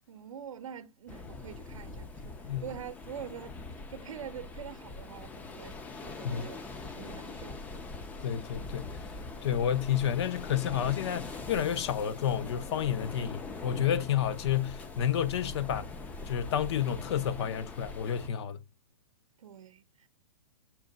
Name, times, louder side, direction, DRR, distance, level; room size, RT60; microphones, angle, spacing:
voice 1, 0.1-7.6 19.4-20.1, right 8 dB, 80° right, 0.6 m, -45 dB
sound 1, 1.1-18.3, left 3 dB, 10° left, 0.4 m, -43 dB
voice 2, 8.2-9.0 9.4-15.9 16.3-18.6, left 9 dB, 55° left, 0.6 m, -30 dB
5.9 x 2.1 x 3.8 m
hypercardioid pair, 140°, 17 cm